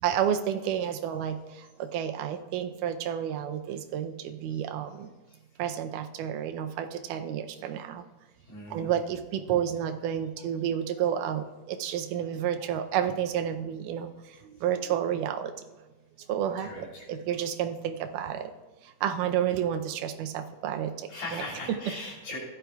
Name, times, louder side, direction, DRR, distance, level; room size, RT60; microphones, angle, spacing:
voice 1, 0.0-5.1 5.6-8.1 8.7-15.5 16.3-18.5 18.8-21.4, right 9 dB, 85° right, 7 dB, 2.2 m, -30 dB
voice 2, 8.5-8.9 16.6-17.1 21.1-22.4, left 2 dB, 90° left, -4 dB, 4.9 m, -39 dB
15.5 x 11.0 x 2.3 m, 1.1 s
omnidirectional pair, 3.6 m